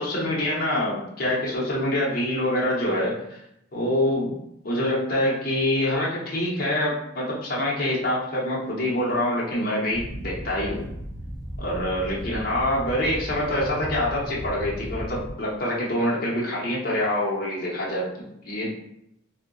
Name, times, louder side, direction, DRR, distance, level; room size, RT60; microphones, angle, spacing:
voice 1, 0.0-3.4 3.7-10.8 11.6-18.7, left 1 dB, 45° left, -5 dB, 0.7 m, -25 dB
sound 1, 9.9-15.3, right 1 dB, 20° right, 0.4 m, -36 dB
2.7 x 2.1 x 3.8 m, 0.78 s
head